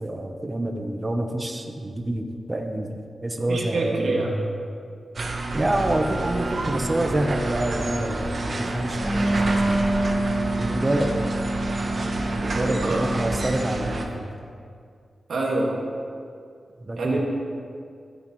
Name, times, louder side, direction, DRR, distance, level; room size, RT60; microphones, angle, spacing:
voice 1, 0.0-4.3 5.5-9.8 10.6-11.2 12.3-14.4 16.8-17.2, right 1 dB, 20° right, 4 dB, 0.8 m, -27 dB
voice 2, 3.5-4.3 12.6-13.0 15.3-15.7 17.0-17.2, right 2 dB, 80° right, -2 dB, 1.8 m, -25 dB
sound 1, 5.2-14.1, right 2 dB, 45° right, 0.9 m, -29 dB
Wind instrument woodwind instrument, 8.9-14.0, right 2 dB, 25° left, 1.4 m, -27 dB
13.5 x 8.9 x 3.1 m, 2.3 s
wide cardioid pair, 110°, 0 cm